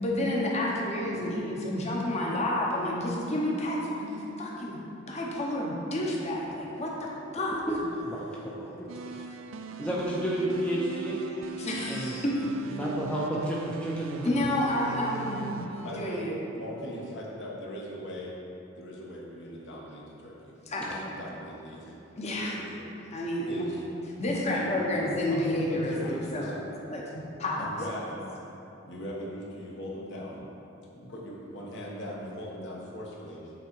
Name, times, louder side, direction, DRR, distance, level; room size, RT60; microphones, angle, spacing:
voice 1, 0.0-4.8 5.1-7.6 11.6-12.4 14.2-15.6 15.9-16.4 20.7-20.9 22.2-22.6 23.1-23.6 24.2-26.5 26.9-27.0 27.4-27.7, left 1 dB, 35° left, -3 dB, 1.0 m, -30 dB
voice 2, 8.0-9.2 9.8-11.2 11.9-12.1 12.7-14.3, right 1 dB, 5° left, -5 dB, 0.6 m, -31 dB
sound 1, 8.9-17.1, right 6 dB, 75° right, 0.4 m, -41 dB
voice 3, 15.8-16.2 16.6-18.3 18.8-20.5 20.8-21.9 22.4-22.9 23.5-23.8 24.5-25.0 25.3-26.6 27.6-28.3 28.8-30.4 30.9-33.5, equal, 60° left, -4 dB, 1.2 m, -40 dB
8.6 x 3.8 x 4.6 m, 2.9 s
head